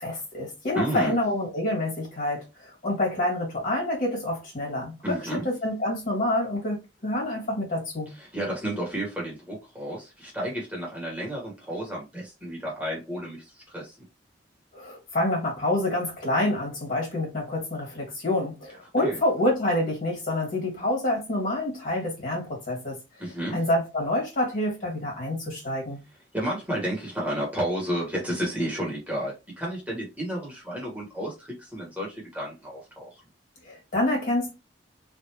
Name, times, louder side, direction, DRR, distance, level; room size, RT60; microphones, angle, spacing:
voice 1, 0.0-8.1 14.7-23.0 23.5-26.0 33.6-34.5, left 1 dB, 50° left, 2.0 m, -27 dB
voice 2, 0.7-1.2 5.0-5.5 8.1-13.9 19.0-19.2 23.2-23.6 26.3-33.1, right 1 dB, 10° right, 1.4 m, -31 dB
3.2 x 2.6 x 3.0 m
head